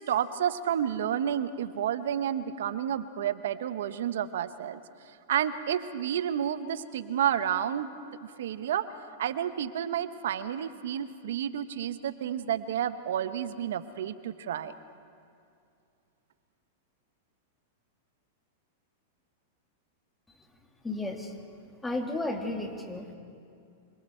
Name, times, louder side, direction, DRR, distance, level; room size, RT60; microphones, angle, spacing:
voice 1, 0.0-4.8 5.3-7.9 8.4-8.9 9.2-14.7, right 9 dB, 75° right, 12 dB, 1.0 m, -30 dB
voice 2, 20.8-21.3 21.8-23.2, left 2 dB, 10° left, 3 dB, 2.6 m, -33 dB
26.0 x 25.5 x 4.5 m, 2.5 s
hypercardioid pair, 115°, 0 cm